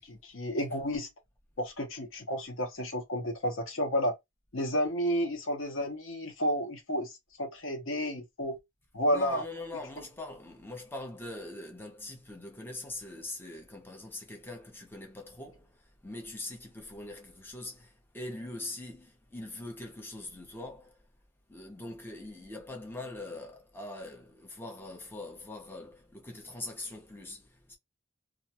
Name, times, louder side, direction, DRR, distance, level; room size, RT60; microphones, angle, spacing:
voice 1, 0.1-1.1 1.6-4.1 4.5-7.1 7.4-8.6 8.9-9.4, equal, 70° left, 0.8 m, -31 dB
voice 2, 9.1-21.0 21.5-27.8, left 2 dB, 10° left, 0.6 m, -42 dB
2.4 x 2.2 x 2.7 m
head